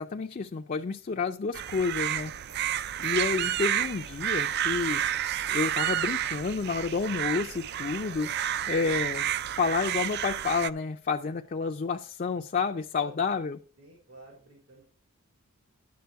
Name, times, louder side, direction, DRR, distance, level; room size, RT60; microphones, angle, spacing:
voice 1, 0.0-2.3 3.0-5.0 5.5-13.6, left 4 dB, 40° left, 5 dB, 0.4 m, -30 dB
sound 1, 1.5-10.7, right 11 dB, 50° right, 0.3 m, -30 dB
voice 2, 12.9-13.4 13.8-14.8, right 2 dB, 75° right, -1 dB, 3.1 m, -51 dB
10.5 x 6.7 x 4.6 m, 0.43 s
head